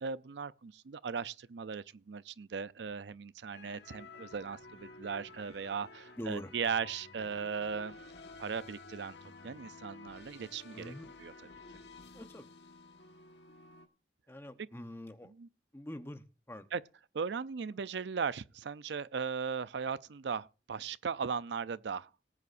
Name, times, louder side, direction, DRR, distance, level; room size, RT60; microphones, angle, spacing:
voice 1, 0.0-8.0 8.4-9.2 9.4-10.9 11.2-11.3 15.4-15.5 16.7-16.8 17.1-22.1, right 6 dB, 75° right, 0.5 m, -37 dB
sound 1, 3.5-13.9, left 3 dB, 75° left, 1.4 m, -52 dB
voice 2, 6.2-6.5 10.7-11.1 12.1-12.5 14.3-15.3 15.7-16.7, left 1 dB, 15° left, 0.9 m, -44 dB
18.5 x 9.5 x 2.6 m
head